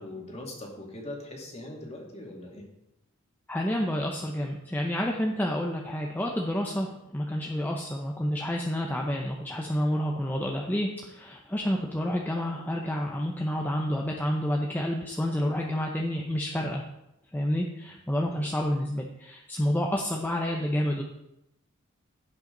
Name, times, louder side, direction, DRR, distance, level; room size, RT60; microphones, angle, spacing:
voice 1, 0.0-2.7 17.8-17.9 18.3-18.5, left 1 dB, 30° left, -1 dB, 2.3 m, -41 dB
voice 2, 3.5-16.8 17.3-21.0, equal, 10° left, 0 dB, 0.7 m, -29 dB
16.0 x 5.9 x 3.9 m, 0.88 s
head